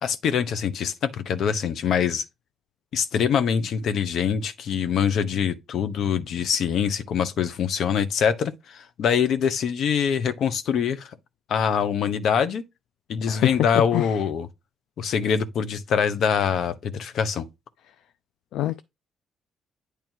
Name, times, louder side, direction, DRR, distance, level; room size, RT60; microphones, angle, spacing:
voice 1, 0.0-2.3 2.9-11.1 11.5-12.6 13.1-14.5 15.0-17.5, left 7 dB, 70° left, 0.8 m, -24 dB
voice 2, 13.3-13.5 13.9-14.1 18.5-18.8, left 13 dB, 85° left, 0.4 m, -25 dB
9.2 x 3.4 x 4.5 m
cardioid pair, 90°, 0 cm